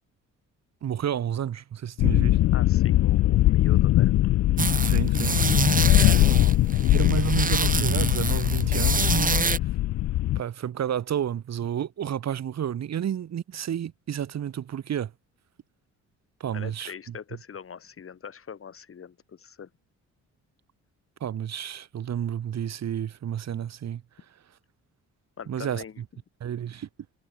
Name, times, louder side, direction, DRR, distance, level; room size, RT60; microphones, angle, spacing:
voice 1, 0.8-2.4 4.8-5.5 6.9-9.5 10.4-15.1 16.4-17.2 21.2-24.0 25.5-25.8 26.4-26.9, right 9 dB, 60° right, 3.6 m, -31 dB
sound 1, 2.0-10.4, left 15 dB, 65° left, 0.5 m, -21 dB
voice 2, 2.5-4.1 5.9-6.9 16.5-19.7 25.4-26.0, left 7 dB, 45° left, 5.0 m, -41 dB
sound 2, 4.6-9.6, right 5 dB, 25° right, 1.6 m, -27 dB
cardioid pair, 90°, 30 cm